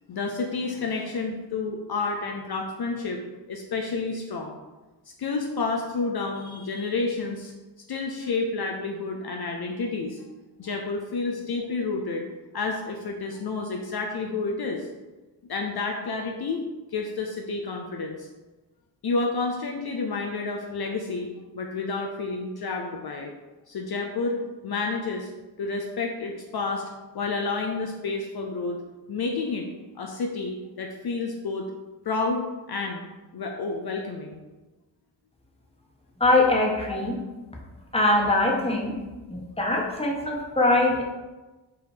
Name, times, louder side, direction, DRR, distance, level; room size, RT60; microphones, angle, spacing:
voice 1, 0.1-3.2 3.5-4.6 5.2-7.5 7.9-10.2 10.6-12.3 12.5-14.9 15.5-18.3 19.0-21.3 21.5-23.3 23.7-25.3 25.6-26.8 27.1-28.8 29.1-29.7 30.0-31.7 32.0-33.0 33.3-34.4 36.9-37.0, left 3 dB, 55° left, 1 dB, 0.7 m, -30 dB
voice 2, 36.2-37.1 37.9-38.9 39.3-41.0, left 2 dB, 15° left, -2 dB, 1.4 m, -22 dB
5.5 x 4.0 x 5.0 m, 1.2 s
wide cardioid pair, 100°, 44 cm